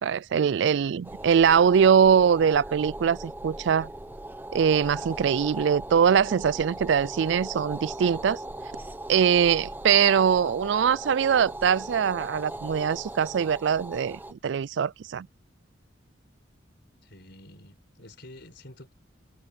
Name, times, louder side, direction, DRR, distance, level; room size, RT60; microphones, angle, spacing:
voice 1, 0.0-3.9 4.5-8.4 9.1-15.3, right 7 dB, 60° right, 0.3 m, -22 dB
sound 1, 1.0-14.3, right 1 dB, 10° right, 0.9 m, -39 dB
voice 2, 17.0-18.9, left 1 dB, 55° left, 5.1 m, -48 dB
head